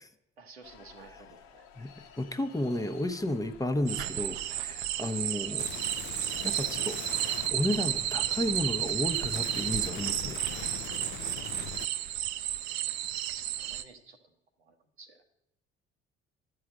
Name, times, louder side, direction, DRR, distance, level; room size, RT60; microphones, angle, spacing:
voice 1, 0.4-1.7 11.9-12.0 12.7-12.8 13.3-14.2 14.6-15.2, right 4 dB, 90° right, 5 dB, 1.0 m, -53 dB
sound 1, 0.6-11.8, left 7 dB, 70° left, 1.0 m, -55 dB
voice 2, 1.8-5.7 6.4-7.0 7.5-10.4, left 1 dB, 10° left, 8 dB, 0.8 m, -32 dB
sound 2, 3.9-13.8, right 13 dB, 60° right, 0.6 m, -32 dB
sound 3, 5.6-11.8, left 11 dB, 40° left, 0.4 m, -42 dB
11.5 x 4.8 x 7.7 m, 0.87 s
figure-of-eight pair, 55°, 31 cm